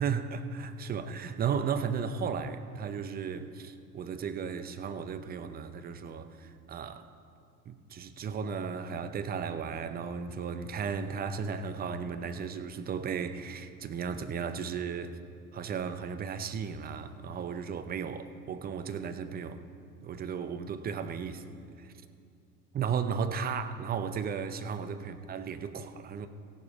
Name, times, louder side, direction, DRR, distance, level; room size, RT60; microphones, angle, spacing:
voice 1, 0.0-7.1 7.7-15.2 15.5-19.6 20.0-21.4 21.8-21.9 22.7-26.3, right 6 dB, 20° right, 10 dB, 0.6 m, -35 dB
16.0 x 7.1 x 5.2 m, 2.4 s
figure-of-eight pair, 80°, 47 cm